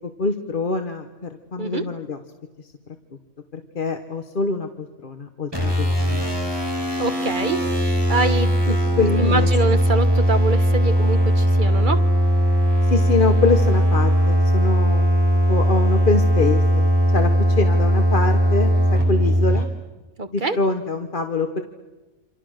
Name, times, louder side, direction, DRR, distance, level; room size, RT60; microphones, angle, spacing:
voice 1, 0.2-2.2 3.5-6.2 8.7-9.8 12.8-15.2 15.5-16.8 17.1-19.7 20.3-21.6, left 3 dB, 45° left, 7 dB, 1.3 m, -24 dB
sound 1, 5.5-19.6, equal, 20° right, 4.7 m, -19 dB
voice 2, 7.0-7.6 8.1-8.8 9.2-12.0 20.2-20.6, right 3 dB, 45° right, 10 dB, 1.3 m, -25 dB
28.0 x 27.0 x 6.5 m, 1.2 s
omnidirectional pair, 1.2 m